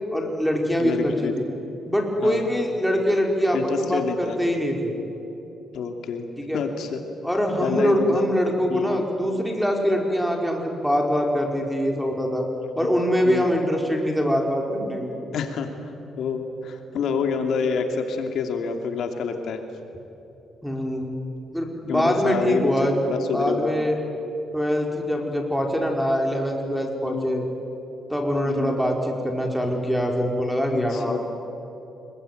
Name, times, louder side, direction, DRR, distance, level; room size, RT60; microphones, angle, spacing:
voice 1, 0.1-1.4 1.9-4.9 6.4-6.6 7.2-12.4 12.8-15.1 20.6-21.1 21.5-22.9 23.3-24.0 24.5-27.5 28.1-31.2, equal, ahead, 0 dB, 4.9 m, -23 dB
voice 2, 0.8-1.3 2.2-2.5 3.5-4.3 5.7-6.3 6.5-7.0 7.6-8.3 8.7-9.0 13.2-13.4 15.3-15.9 16.2-19.6 21.9-22.7 23.1-23.8 27.0-27.4 28.5-28.8 30.7-31.2, left 6 dB, 70° left, 5 dB, 2.7 m, -27 dB
26.0 x 23.0 x 9.4 m, 3.0 s
cardioid pair, 90°, 0 cm